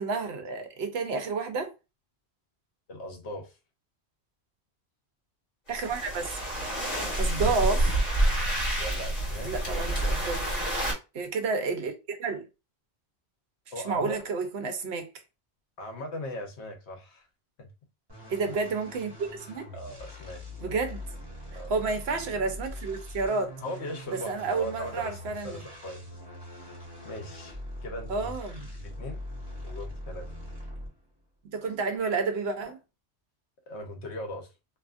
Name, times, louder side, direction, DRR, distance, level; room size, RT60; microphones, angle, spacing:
voice 1, 0.0-1.7 5.7-6.4 7.2-8.0 9.4-10.6 11.1-12.4 13.9-15.1 18.3-19.7 20.6-21.0 21.5-23.5 24.1-25.6 28.1-28.7 31.4-32.8, right 4 dB, 70° right, 0.9 m, -30 dB
voice 2, 2.9-3.6 8.8-9.5 13.7-14.2 15.8-17.3 17.6-17.7 19.7-20.4 21.5-21.8 23.6-26.0 27.0-28.3 28.7-29.2 29.6-30.3 33.7-34.5, left 1 dB, 80° left, 1.1 m, -39 dB
sound 1, 5.7-10.9, right 1 dB, 40° left, 1.4 m, -28 dB
sound 2, 18.1-31.1, left 1 dB, 20° right, 1.3 m, -42 dB
2.8 x 2.5 x 2.4 m
omnidirectional pair, 1.1 m